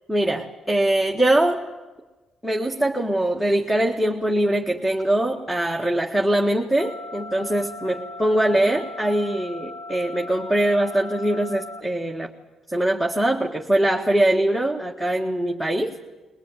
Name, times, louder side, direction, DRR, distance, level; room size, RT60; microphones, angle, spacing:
voice 1, 0.1-1.6 2.4-12.3 12.7-15.9, right 1 dB, ahead, 2 dB, 1.8 m, -22 dB
sound 1, 6.8-11.8, left 2 dB, 60° left, 3.0 m, -38 dB
22.5 x 20.0 x 9.3 m, 1.2 s
cardioid pair, 90°, 0 cm